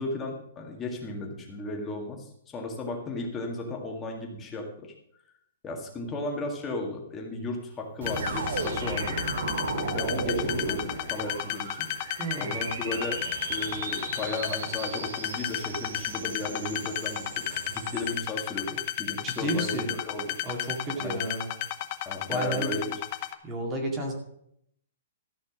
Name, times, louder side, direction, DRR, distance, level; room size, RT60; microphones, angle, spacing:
voice 1, 0.0-4.9 5.6-9.2 9.7-11.9 12.4-13.2 13.5-20.4 21.0-21.2 22.1-22.9, left 2 dB, 10° left, 0 dB, 1.9 m, -35 dB
sound 1, 8.0-18.1, right 3 dB, 85° right, 2.4 m, -35 dB
sound 2, 8.1-23.3, left 14 dB, 30° left, 0.9 m, -33 dB
voice 2, 12.2-12.7 19.2-20.0 20.4-21.5 22.3-22.8 23.4-24.1, right 1 dB, 15° right, 1 dB, 2.2 m, -32 dB
13.5 x 6.4 x 6.1 m, 0.72 s
hypercardioid pair, 170°, 0 cm